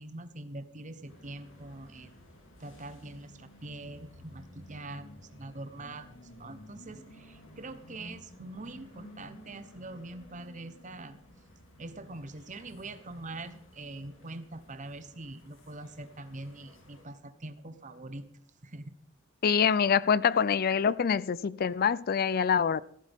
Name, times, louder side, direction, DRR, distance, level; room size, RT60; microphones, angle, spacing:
voice 1, 0.0-2.1 2.6-6.1 6.3-11.2 11.8-18.3 18.6-18.9, right 2 dB, 40° right, 1.0 m, -43 dB
sound 1, 1.1-17.0, left 1 dB, 75° left, 3.0 m, -54 dB
voice 2, 19.4-22.8, left 7 dB, 50° left, 0.4 m, -25 dB
15.0 x 14.0 x 3.6 m
head